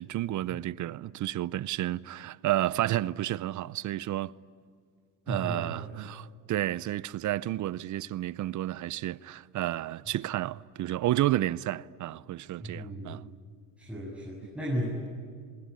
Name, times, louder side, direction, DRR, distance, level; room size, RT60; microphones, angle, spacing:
voice 1, 0.0-4.3 5.3-13.3, right 14 dB, 40° right, 0.6 m, -31 dB
voice 2, 5.3-6.0 12.6-13.2 13.8-15.0, equal, ahead, 7.4 m, -35 dB
25.5 x 22.0 x 9.8 m
supercardioid pair, 100°, 50 cm